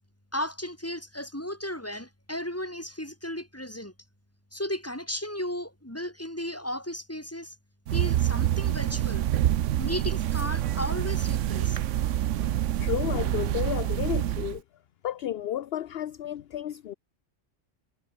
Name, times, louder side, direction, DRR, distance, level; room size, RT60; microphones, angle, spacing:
voice 1, 0.3-3.9 4.5-7.5 7.9-9.2 9.8-11.8 12.4-12.5, left 1 dB, 10° left, 4.5 m, -35 dB
sound 1, 7.9-14.6, right 12 dB, 90° right, 1.0 m, -27 dB
voice 2, 12.8-14.6 15.0-16.9, left 11 dB, 60° left, 0.8 m, -32 dB
omnidirectional pair, 1.2 m